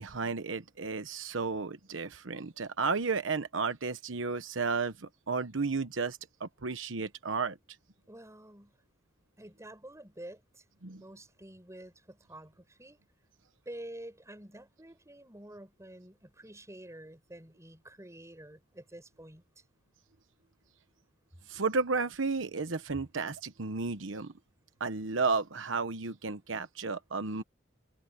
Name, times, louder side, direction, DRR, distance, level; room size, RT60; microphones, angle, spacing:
voice 1, 0.0-7.6 10.8-11.0 21.5-24.3 24.8-27.4, right 4 dB, 85° right, 1.1 m, -33 dB
voice 2, 8.1-8.7 9.4-10.6 11.0-13.0 13.7-19.4, right 1 dB, 15° right, 7.6 m, -48 dB
head